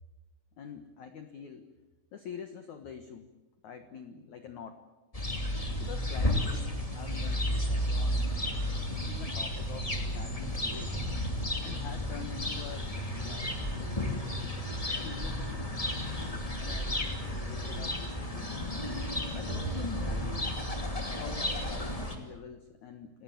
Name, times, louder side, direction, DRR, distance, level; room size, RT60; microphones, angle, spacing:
voice 1, 0.6-1.7 2.1-3.3 3.6-4.8 5.8-8.3 9.0-11.0 11.6-14.5 15.0-15.8 16.5-18.8 19.3-20.4 21.1-23.2, left 7 dB, 70° left, 8 dB, 1.8 m, -46 dB
sound 1, 5.1-22.2, left 1 dB, 20° left, 1.0 m, -33 dB
sound 2, 7.1-19.1, equal, 50° left, 6.5 m, -45 dB
sound 3, 10.1-20.2, left 3 dB, 75° right, 9.4 m, -50 dB
28.5 x 18.0 x 9.3 m, 1.1 s
omnidirectional pair, 5.5 m